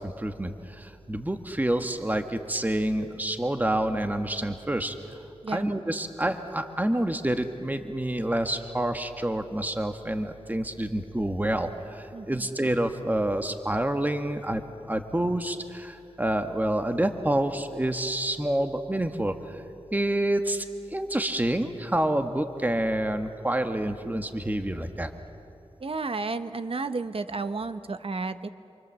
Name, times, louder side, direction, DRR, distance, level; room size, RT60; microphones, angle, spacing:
voice 1, 0.0-4.9 5.5-14.6 14.9-19.6 19.9-25.1, right 1 dB, 15° right, 6 dB, 1.5 m, -28 dB
voice 2, 5.4-5.7 12.1-12.5 25.8-28.5, right 3 dB, 60° right, 10 dB, 1.1 m, -32 dB
27.5 x 24.0 x 7.6 m, 2.7 s
wide cardioid pair, 55°, 11 cm